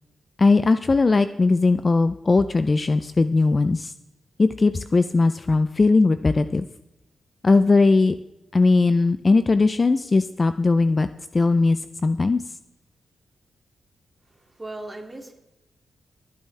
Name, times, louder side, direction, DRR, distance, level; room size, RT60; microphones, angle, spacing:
voice 1, 0.4-3.9 4.4-6.7 7.4-8.2 8.5-11.1 11.3-12.4, left 3 dB, 25° left, 11 dB, 0.4 m, -19 dB
voice 2, 14.2-15.3, right 2 dB, 15° right, 2 dB, 2.3 m, -38 dB
21.5 x 9.1 x 3.3 m, 0.92 s
wide cardioid pair, 145°, 0 cm